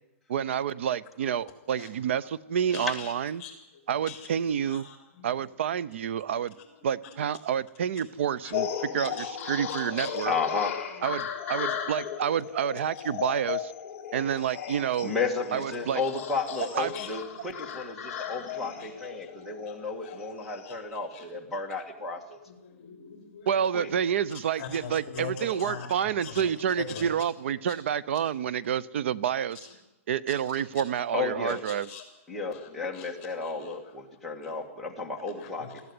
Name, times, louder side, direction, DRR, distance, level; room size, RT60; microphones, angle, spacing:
voice 1, 0.3-3.4 3.9-4.9 5.2-6.5 6.8-10.3 11.0-13.7 14.1-15.1 15.5-16.0 16.7-16.9 23.5-29.7 30.1-31.9, right 8 dB, 55° right, 20 dB, 0.7 m, -29 dB
voice 2, 2.7-3.1 3.4-3.5 4.1-4.3 4.7-5.3 8.8-9.6 10.0-10.1 12.0-12.1 14.1-14.2 16.9-17.1 18.2-18.9 19.3-20.1 20.4-21.2 22.5-23.5 24.6-25.9 26.2-26.5 26.9-27.2 30.5-30.6 31.7-32.0 32.5-32.6 32.9-33.1 33.4-33.6 35.2-35.8, left 6 dB, 35° left, 4 dB, 3.4 m, -43 dB
sound 1, 8.5-20.8, left 9 dB, 20° left, 3.1 m, -36 dB
voice 3, 10.3-10.7 15.0-22.4 23.7-23.9 31.1-31.6 32.3-35.8, left 4 dB, ahead, -4 dB, 1.9 m, -33 dB
19.0 x 15.0 x 9.7 m, 0.95 s
hypercardioid pair, 175°, 8 cm